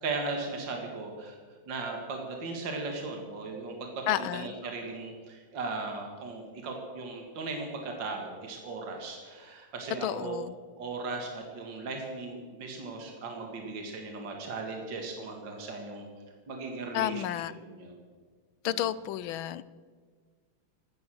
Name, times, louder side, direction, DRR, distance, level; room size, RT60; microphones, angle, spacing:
voice 1, 0.0-1.4 1.7-3.9 4.2-10.4 10.8-16.1 16.5-17.2 17.7-17.9 18.6-18.8, right 3 dB, 65° right, 2 dB, 2.6 m, -37 dB
voice 2, 4.1-4.5 10.0-10.6 16.9-17.5 18.6-19.6, left 12 dB, 80° left, 18 dB, 1.4 m, -31 dB
16.5 x 13.0 x 6.3 m, 1.5 s
omnidirectional pair, 2.2 m